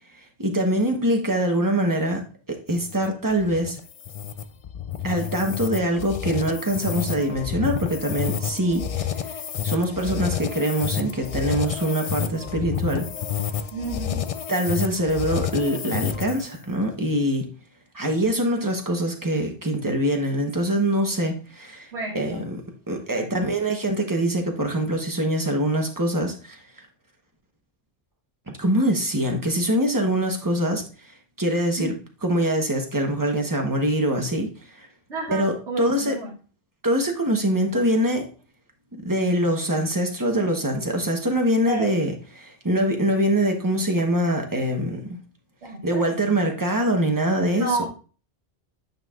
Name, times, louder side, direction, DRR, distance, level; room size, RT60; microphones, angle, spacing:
voice 1, 0.4-3.8 5.0-9.1 9.6-13.1 14.5-17.5 17.9-21.9 22.1-26.6 28.5-30.8 31.4-31.9 32.2-34.9 35.3-36.1 36.8-38.3 39.0-45.2 45.8-47.9, right 1 dB, 20° right, 2 dB, 1.1 m, -24 dB
sound 1, 2.7-16.6, left 9 dB, 60° left, 0.4 m, -30 dB
voice 2, 13.7-14.2 21.9-22.4 23.1-23.3 31.8-31.9 35.1-36.3 41.7-41.9 45.6-46.3 47.5-47.9, right 2 dB, 85° right, -3 dB, 1.5 m, -31 dB
9.2 x 5.5 x 2.4 m, 0.37 s
omnidirectional pair, 1.1 m